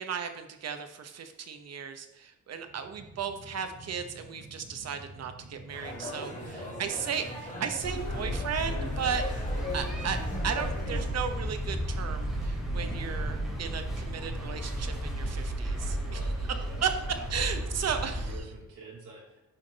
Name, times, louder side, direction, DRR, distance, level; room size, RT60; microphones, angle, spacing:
voice 1, 0.0-9.2 9.7-10.2 10.4-16.2 16.5-16.9 17.3-18.3, right 7 dB, 55° right, 7 dB, 1.0 m, -35 dB
sound 1, 2.6-15.8 16.2-16.3, right 2 dB, 40° right, 2.2 m, -45 dB
sound 2, 5.7-11.0, left 2 dB, 25° left, 2.6 m, -40 dB
voice 2, 6.3-7.0 16.0-19.4, right 3 dB, 80° right, -3 dB, 3.2 m, -48 dB
sound 3, 7.8-18.4, equal, ahead, 3.0 m, -33 dB
10.5 x 5.8 x 4.1 m, 0.96 s
wide cardioid pair, 180°, 31 cm